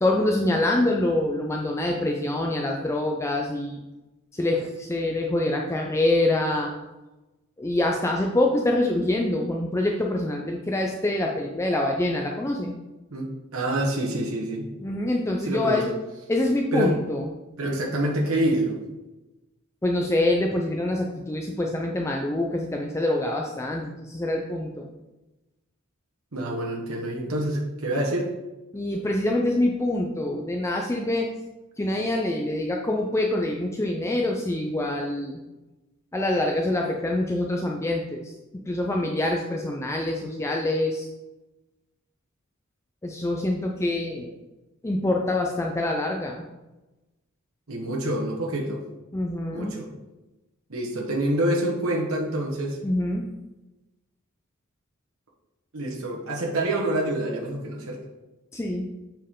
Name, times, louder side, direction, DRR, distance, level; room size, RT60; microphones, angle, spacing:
voice 1, 0.0-3.8 4.3-6.7 7.6-12.7 14.8-15.9 16.3-17.3 19.8-24.9 28.7-31.3 31.8-35.4 36.1-38.3 38.7-41.1 43.0-44.3 44.8-46.4 49.1-49.7 52.8-53.3 58.5-58.9, left 1 dB, 15° left, 0 dB, 0.4 m, -25 dB
voice 2, 13.1-14.7 15.4-15.8 16.7-16.9 17.6-18.9 26.3-28.3 47.7-48.8 49.5-49.9 50.7-52.8 55.7-58.0, right 1 dB, 85° right, -2 dB, 1.2 m, -27 dB
7.3 x 4.4 x 3.7 m, 1.1 s
head